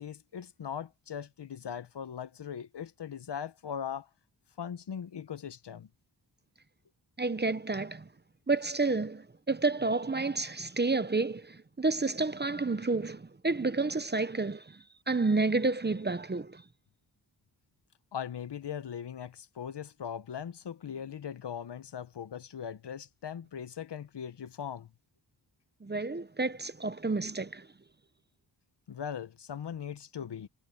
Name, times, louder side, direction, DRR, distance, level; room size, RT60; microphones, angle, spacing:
voice 1, 0.0-4.1 4.6-5.9 18.1-24.9 28.9-30.5, left 8 dB, 70° left, 1.0 m, -40 dB
voice 2, 7.2-8.1 8.5-16.6 25.8-27.7, right 3 dB, 25° right, 0.8 m, -30 dB
wide cardioid pair, 80°, 43 cm